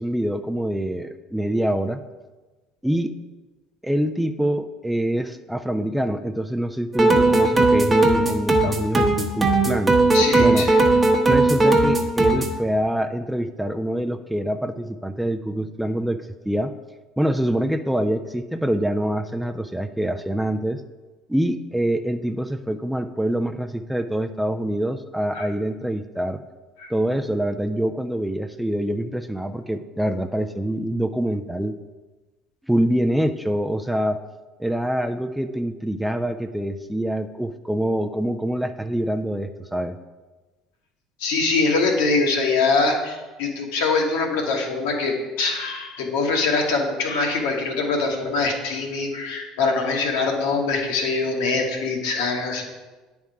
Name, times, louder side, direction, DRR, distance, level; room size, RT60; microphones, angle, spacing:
voice 1, 0.0-2.0 2.8-3.2 3.8-9.9 10.4-10.7 11.3-16.7 17.2-20.8 21.3-26.4 26.9-31.7 32.6-34.2 34.6-39.9, right 1 dB, 5° right, 8 dB, 0.4 m, -25 dB
sound 1, 6.9-12.6, right 2 dB, 25° right, 0.9 m, -18 dB
voice 2, 10.1-10.8 25.3-25.5 26.8-26.9 41.2-52.6, left 3 dB, 70° left, 1 dB, 1.2 m, -23 dB
9.6 x 3.6 x 4.7 m, 1.2 s
hypercardioid pair, 65°, 0 cm